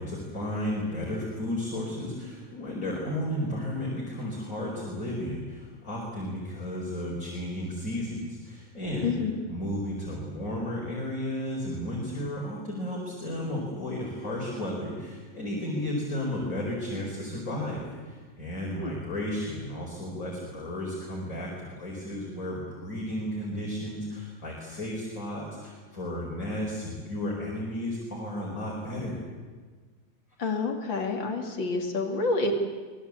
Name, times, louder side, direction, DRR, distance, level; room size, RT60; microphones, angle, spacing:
voice 1, 0.0-9.1 9.5-29.2, left 1 dB, 40° left, -3 dB, 5.2 m, -33 dB
voice 2, 9.0-9.4 18.8-18.9 30.4-32.5, left 3 dB, 70° left, 3 dB, 3.3 m, -28 dB
24.0 x 20.5 x 8.3 m, 1.5 s
omnidirectional pair, 2.2 m